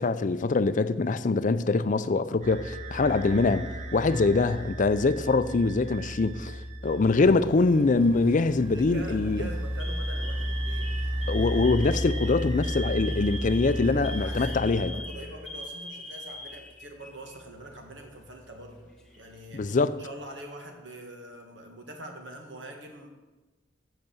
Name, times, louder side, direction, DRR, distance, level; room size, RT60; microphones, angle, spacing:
voice 1, 0.0-6.5 6.8-9.4 11.3-14.9 19.5-20.0, left 3 dB, 45° left, 0.4 m, -24 dB
sound 1, 2.4-15.5, equal, 40° right, 1.1 m, -34 dB
Alarm, 6.9-7.4 8.3-8.6 9.0-9.2 9.8-17.3 17.6-17.8 18.7-19.4, left 1 dB, 5° left, 1.8 m, -42 dB
sound 2, 7.3-14.6, right 1 dB, 10° right, 2.5 m, -48 dB
voice 2, 8.7-10.9 14.2-18.8 19.2-23.1, right 1 dB, 65° right, 1.7 m, -44 dB
8.1 x 6.8 x 7.0 m
head